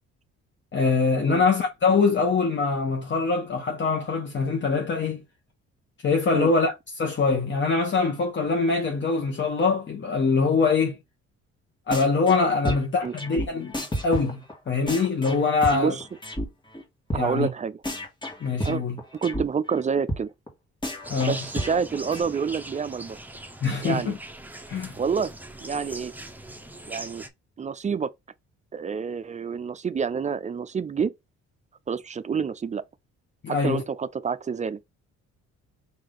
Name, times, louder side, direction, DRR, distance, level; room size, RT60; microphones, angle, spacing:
voice 1, 0.7-5.2 6.0-11.0 11.9-13.7 14.0-14.4 14.7-15.9 17.1-17.5 18.4-19.0 21.1-21.4 23.6-24.2 24.7-25.0 33.4-33.8, left 4 dB, 40° left, 1.0 m, -23 dB
sound 1, 11.9-12.4 12.6-16.4 16.7-16.8 17.1-17.2 17.5-17.6 17.8-19.4 19.7-19.8 20.1-20.2 20.5-20.6 20.8-22.2, equal, 15° left, 1.6 m, -31 dB
voice 2, 15.7-16.0 17.1-17.8 18.6-18.8 19.2-20.3 21.2-23.2 23.8-24.1 25.0-25.3 25.6-26.1 26.9-27.2 27.6-28.1 28.7-31.1 31.9-32.8 33.5-34.8, right 6 dB, 25° right, 0.4 m, -28 dB
sound 2, 21.0-27.3, right 1 dB, 5° right, 0.7 m, -40 dB
4.9 x 2.6 x 3.8 m
cardioid pair, 90°, 30 cm